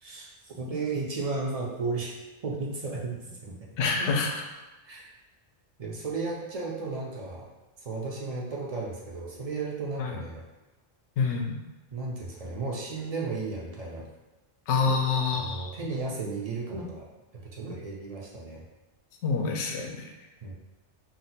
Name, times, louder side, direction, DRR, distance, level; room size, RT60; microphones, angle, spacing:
voice 1, 0.0-2.2 2.4-3.6 4.0-4.1 4.8-5.1 5.8-7.5 7.8-10.4 11.9-14.1 14.8-15.0 15.3-17.1 17.3-18.6 20.4-20.5, right 3 dB, 45° right, -3 dB, 0.5 m, -34 dB
voice 2, 3.8-4.4 10.0-10.2 11.2-11.6 14.7-15.7 19.2-20.1, left 4 dB, 75° left, 1 dB, 0.9 m, -27 dB
2.7 x 2.1 x 4.1 m, 1.2 s
omnidirectional pair, 1.2 m